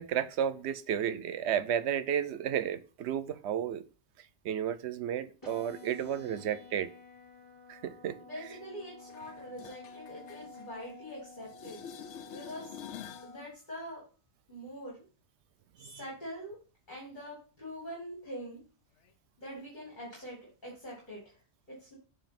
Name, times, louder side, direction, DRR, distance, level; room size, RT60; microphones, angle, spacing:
voice 1, 0.0-3.8 4.4-6.9 7.7-8.2 15.8-16.0, right 9 dB, 75° right, 0.8 m, -32 dB
sound 1, 5.4-13.4, left 3 dB, 15° left, 3.2 m, -51 dB
voice 2, 8.2-12.8 13.2-14.0 14.5-15.0 15.8-16.6 16.9-18.6 19.4-21.4 21.7-21.9, equal, 45° left, 2.3 m, -44 dB
sound 2, 9.1-11.2 11.4-13.3 19.1-19.2, left 8 dB, 80° left, 0.9 m, -48 dB
7.1 x 2.9 x 5.7 m
omnidirectional pair, 1.2 m